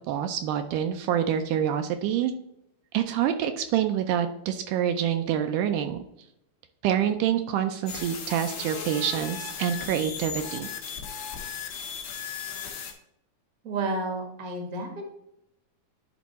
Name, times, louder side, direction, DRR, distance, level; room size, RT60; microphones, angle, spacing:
voice 1, 0.1-2.3 2.9-6.0 6.8-10.7, right 10 dB, 80° right, 7 dB, 1.9 m, -26 dB
sound 1, 7.9-12.9, left 7 dB, 90° left, 1.1 m, -36 dB
voice 2, 13.6-15.0, right 2 dB, 55° right, 2 dB, 0.9 m, -31 dB
10.5 x 3.6 x 4.1 m, 0.80 s
omnidirectional pair, 3.9 m